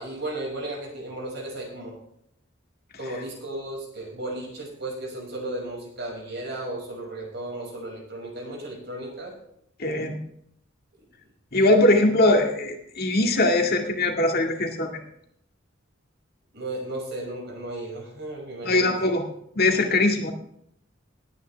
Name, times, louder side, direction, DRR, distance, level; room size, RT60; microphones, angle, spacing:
voice 1, 0.0-2.0 3.0-9.3 11.6-11.7 16.5-19.1, right 1 dB, 60° right, 0 dB, 5.8 m, -35 dB
voice 2, 9.8-10.2 11.5-15.0 18.6-19.3 19.6-20.3, left 2 dB, 55° left, 3 dB, 2.0 m, -21 dB
19.0 x 9.8 x 3.4 m, 0.72 s
head